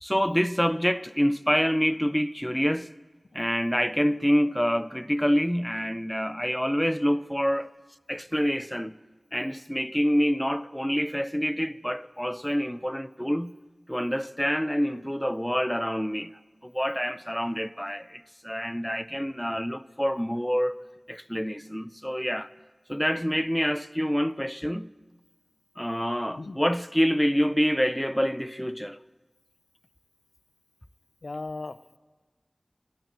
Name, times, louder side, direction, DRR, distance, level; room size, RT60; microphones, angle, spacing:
voice 1, 0.0-2.9 3.3-7.7 8.1-9.0 9.3-13.5 13.9-20.8 21.1-22.5 22.9-24.9 25.8-29.0, equal, 5° left, 0.4 m, -27 dB
voice 2, 31.2-32.0, left 3 dB, 85° left, 0.5 m, -37 dB
13.5 x 12.0 x 8.3 m
wide cardioid pair, 55°, 0 cm